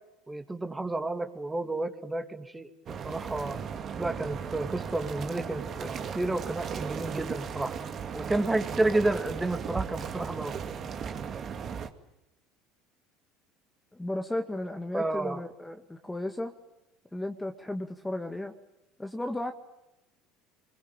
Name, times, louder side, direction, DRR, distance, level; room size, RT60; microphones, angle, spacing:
voice 1, 0.3-2.7 3.0-3.6 4.0-7.7 8.1-10.6 14.9-15.4, right 2 dB, 15° right, 7 dB, 2.7 m, -31 dB
sound 1, 2.9-11.9, right 7 dB, 45° right, 2.3 m, -36 dB
voice 2, 13.9-16.5 17.1-18.5 19.0-19.5, left 1 dB, 10° left, 5 dB, 1.9 m, -34 dB
25.5 x 22.5 x 9.0 m, 0.93 s
hypercardioid pair, 70°, 0 cm